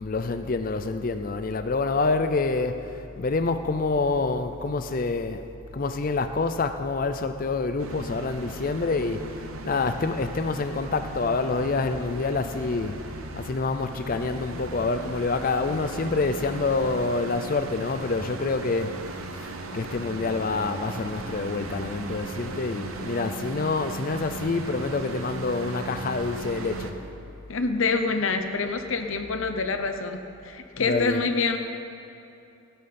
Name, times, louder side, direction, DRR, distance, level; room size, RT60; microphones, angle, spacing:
voice 1, 0.0-5.4 5.7-19.0 19.3-27.0 30.8-31.2, left 3 dB, 40° left, 9 dB, 0.4 m, -27 dB
sound 1, 7.8-26.9, right 3 dB, 85° right, 1.0 m, -37 dB
voice 2, 27.5-31.6, left 4 dB, 70° left, 7 dB, 0.9 m, -26 dB
16.5 x 11.0 x 4.3 m, 2.8 s
head